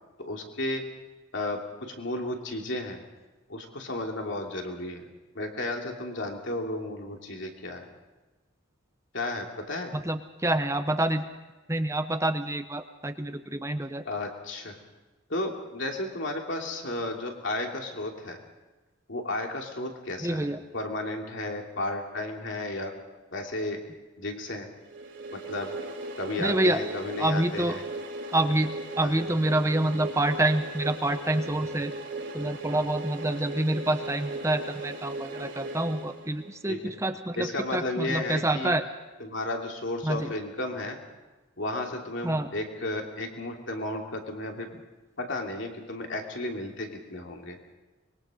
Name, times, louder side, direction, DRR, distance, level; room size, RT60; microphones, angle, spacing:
voice 1, 0.2-0.8 1.3-1.6 1.9-3.0 3.5-5.1 5.3-7.9 9.1-10.0 14.0-14.8 15.3-18.4 19.1-22.9 23.3-23.8 24.2-24.7 25.3-25.7 26.2-27.8 29.0-29.1 36.7-36.8 37.4-38.7 39.2-41.0 41.6-44.7 45.2-47.6, left 2 dB, 60° left, 2 dB, 2.9 m, -33 dB
voice 2, 9.9-11.2 11.7-14.0 20.2-20.6 26.4-26.8 27.2-27.8 28.3-28.7 29.0-31.9 32.3-38.9 40.0-40.3 42.2-42.5, right 1 dB, 15° right, 8 dB, 0.7 m, -27 dB
sound 1, 24.9-36.7, right 2 dB, 55° right, 3.3 m, -38 dB
24.5 x 22.0 x 5.2 m, 1.1 s
head